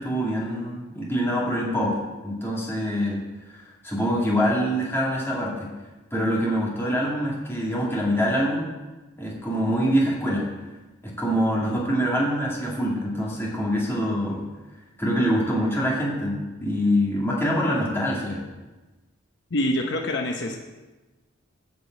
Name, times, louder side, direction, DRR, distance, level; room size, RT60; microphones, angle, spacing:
voice 1, 0.0-3.2 3.5-5.7 6.1-8.7 9.2-10.5 11.0-14.5 15.0-18.4, equal, 10° left, -4 dB, 2.4 m, -25 dB
voice 2, 19.5-20.6, left 1 dB, 60° left, 2 dB, 1.0 m, -25 dB
10.5 x 5.3 x 8.1 m, 1.2 s
head